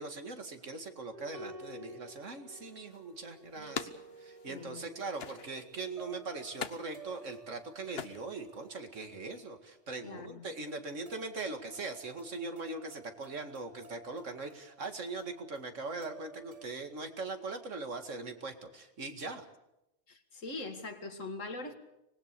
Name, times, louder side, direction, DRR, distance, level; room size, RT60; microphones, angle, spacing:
voice 1, 0.0-3.9 4.2-19.4, right 3 dB, 75° right, 6 dB, 2.4 m, -41 dB
sound 1, 1.1-16.7, right 2 dB, 30° right, 1.1 m, -54 dB
sound 2, 2.5-4.8 5.1-5.9 6.4-8.8, left 6 dB, 55° left, 1.2 m, -44 dB
voice 2, 4.4-4.9 10.0-10.5 20.1-21.7, left 3 dB, 85° left, 7 dB, 2.4 m, -42 dB
25.0 x 19.5 x 6.9 m, 0.89 s
omnidirectional pair, 1.3 m